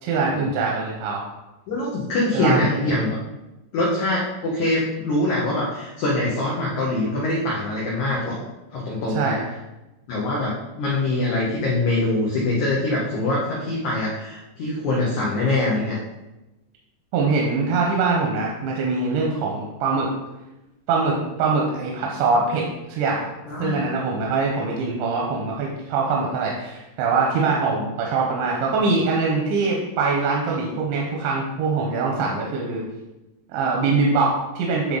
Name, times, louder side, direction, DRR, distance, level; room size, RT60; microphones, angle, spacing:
voice 1, 0.0-1.2 2.3-2.9 9.1-9.5 17.1-20.1 20.9-23.3 23.6-32.8 33.5-35.0, right 4 dB, 85° right, -2 dB, 3.2 m, -23 dB
voice 2, 1.7-3.2 3.7-8.4 8.7-9.4 10.1-16.0 23.5-23.8 24.6-24.8, left 2 dB, 85° left, -5 dB, 1.6 m, -24 dB
9.9 x 3.9 x 3.9 m, 1.0 s
omnidirectional pair, 5.2 m